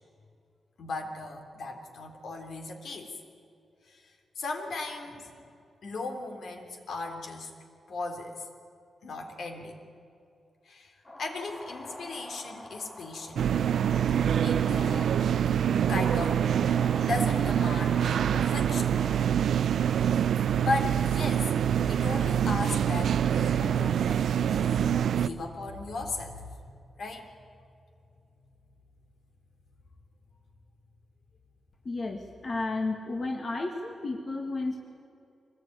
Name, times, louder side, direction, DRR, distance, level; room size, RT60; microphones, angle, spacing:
voice 1, 0.8-3.2 3.8-5.3 5.8-7.5 7.9-8.5 9.0-9.8 10.6-13.4 14.4-15.2 15.9-16.5 17.0-18.9 19.8-20.2 20.6-27.3, left 3 dB, 60° left, 4 dB, 3.4 m, -37 dB
sound 1, 11.0-19.3, left 1 dB, 20° left, 3.9 m, -45 dB
sound 2, 13.4-25.3, right 9 dB, 75° right, 0.6 m, -25 dB
voice 2, 31.9-34.8, left 3 dB, 35° left, 3 dB, 1.7 m, -32 dB
24.5 x 20.0 x 9.4 m, 2.6 s
wide cardioid pair, 160°, 0 cm